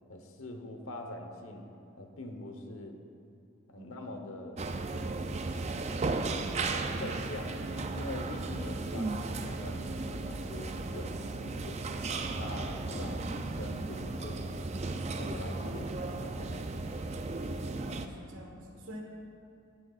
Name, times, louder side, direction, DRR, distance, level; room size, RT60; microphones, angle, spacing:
voice 1, 0.1-1.7 2.0-3.0 3.7-4.6 7.0-11.9 12.3-14.7 15.2-15.9 16.2-16.7, left 1 dB, 85° left, 4 dB, 1.1 m, -44 dB
sound 1, 4.6-18.1, right 3 dB, 30° right, 0.4 m, -35 dB
voice 2, 17.7-19.0, equal, 80° right, 0 dB, 1.5 m, -48 dB
17.5 x 8.6 x 2.5 m, 2.5 s
head